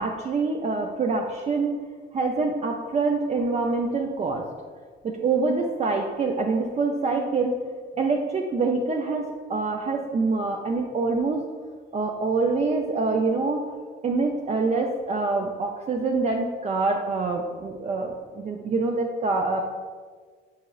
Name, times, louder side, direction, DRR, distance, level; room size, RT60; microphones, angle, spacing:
voice 1, 0.0-1.8 2.1-4.5 5.0-7.6 8.0-11.5 11.9-13.6 14.0-19.6, right 3 dB, 35° right, 1 dB, 0.3 m, -25 dB
5.5 x 2.9 x 2.3 m, 1.5 s
cardioid pair, 90°, 20 cm